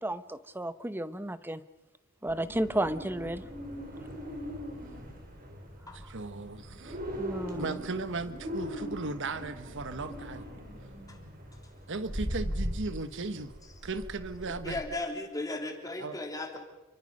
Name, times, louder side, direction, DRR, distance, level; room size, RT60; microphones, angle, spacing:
voice 1, 0.0-1.6 2.2-3.4 7.2-7.8, right 1 dB, 10° right, 13 dB, 0.8 m, -32 dB
sound 1, 2.3-14.9, equal, 45° right, 4.3 m, -40 dB
voice 2, 5.9-7.0 7.5-10.4 11.9-13.5 13.8-14.8 16.0-16.2, right 3 dB, 60° right, 11 dB, 1.2 m, -36 dB
voice 3, 14.6-16.6, left 2 dB, 15° left, 2 dB, 3.1 m, -36 dB
29.0 x 24.0 x 5.4 m, 1.1 s
head